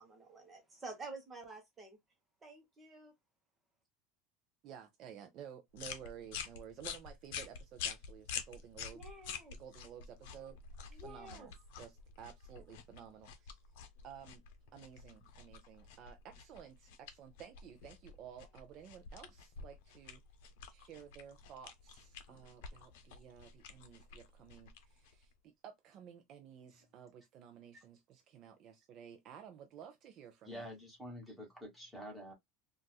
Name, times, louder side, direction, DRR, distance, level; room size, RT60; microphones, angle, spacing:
voice 1, 0.0-2.0 2.4-3.1 8.9-9.6 10.9-11.5, right 3 dB, 15° right, 1.0 m, -50 dB
voice 2, 4.6-9.0 9.6-10.6 10.9-13.6 14.0-14.4 14.7-20.2 20.7-30.7, right 8 dB, 40° right, 0.5 m, -53 dB
sound 1, 5.7-25.3, left 7 dB, 75° left, 0.7 m, -48 dB
voice 3, 30.5-32.3, equal, ahead, 1.5 m, -47 dB
4.0 x 2.5 x 2.2 m
cardioid pair, 160°, 0 cm